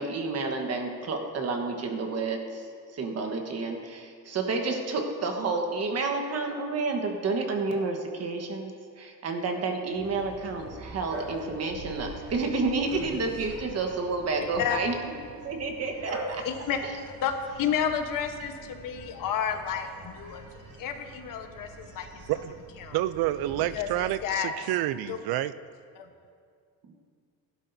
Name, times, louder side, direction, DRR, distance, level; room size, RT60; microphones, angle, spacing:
voice 1, 0.0-14.9 15.4-16.4, right 3 dB, 40° right, 4 dB, 1.3 m, -30 dB
Bark, 9.9-24.3, right 2 dB, 60° right, 2.6 m, -44 dB
voice 2, 14.4-14.8 16.4-22.2 22.8-23.0 23.6-24.6 25.1-25.4 26.0-26.1, left 8 dB, 60° left, 5 dB, 1.2 m, -31 dB
voice 3, 22.9-25.5, right 14 dB, 80° right, 15 dB, 0.5 m, -28 dB
16.5 x 11.5 x 2.7 m, 2.2 s
cardioid pair, 140°, 37 cm